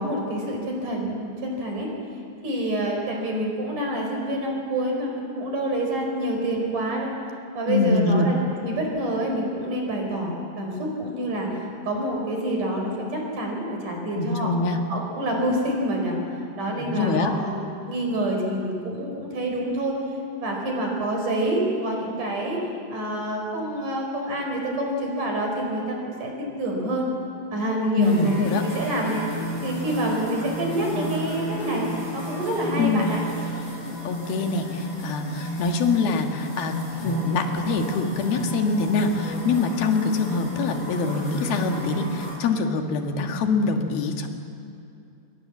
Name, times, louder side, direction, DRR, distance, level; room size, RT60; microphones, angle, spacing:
voice 1, 0.0-1.9 2.4-7.1 7.5-11.5 11.8-14.5 14.9-16.2 16.6-20.0 20.4-22.6 22.9-27.1 27.5-28.3 28.6-29.2 29.6-31.9 32.1-33.2, right 1 dB, 60° right, 1 dB, 6.2 m, -27 dB
voice 2, 7.7-8.3 14.2-14.8 16.8-17.3 27.9-28.6 32.8-33.1 34.1-36.7 37.0-44.3, left 4 dB, 85° left, 4 dB, 3.6 m, -24 dB
sound 1, 28.0-42.4, right 1 dB, 45° left, 7.3 m, -32 dB
27.0 x 23.0 x 7.4 m, 2.6 s
omnidirectional pair, 4.2 m